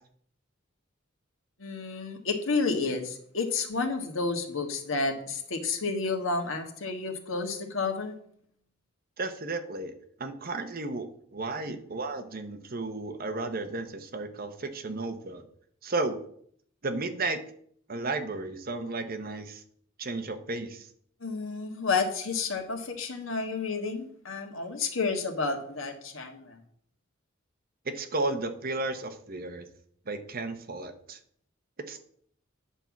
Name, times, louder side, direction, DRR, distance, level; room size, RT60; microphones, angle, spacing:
voice 1, 1.6-8.1 21.2-26.6, left 4 dB, 75° left, 4 dB, 1.6 m, -30 dB
voice 2, 9.2-9.9 10.2-11.1 11.3-15.4 15.8-16.2 16.8-17.4 17.9-19.6 20.0-20.9 27.8-29.7 30.1-31.2 31.9-32.0, right 2 dB, 45° right, 8 dB, 1.0 m, -33 dB
9.8 x 4.6 x 7.1 m, 0.63 s
head